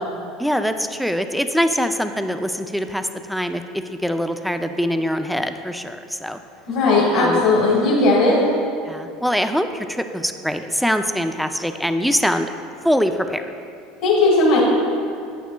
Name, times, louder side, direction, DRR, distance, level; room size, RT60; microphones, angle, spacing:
voice 1, 0.4-6.4 7.2-7.4 8.8-12.5 12.8-13.5, equal, ahead, 7 dB, 0.3 m, -23 dB
voice 2, 6.7-8.5 14.0-14.6, left 2 dB, 65° left, -4 dB, 1.4 m, -16 dB
9.2 x 8.2 x 2.2 m, 2.4 s
supercardioid pair, 120°, 0 cm